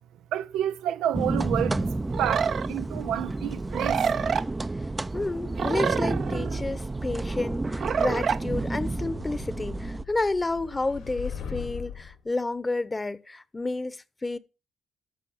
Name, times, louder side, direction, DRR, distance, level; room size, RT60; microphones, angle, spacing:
voice 1, 0.3-1.8 2.2-4.0, right 11 dB, 90° right, 0.6 m, -29 dB
sound 1, 1.1-10.0, right 2 dB, 20° right, 0.6 m, -31 dB
sound 2, 2.1-2.7 3.7-4.4 5.6-6.6 7.8-8.4, right 7 dB, 55° right, 0.8 m, -27 dB
voice 2, 5.1-14.4, left 2 dB, 20° left, 1.0 m, -30 dB
sound 3, 8.7-12.2, left 7 dB, 85° left, 3.7 m, -40 dB
13.5 x 6.0 x 7.3 m
cardioid pair, 90°, 0 cm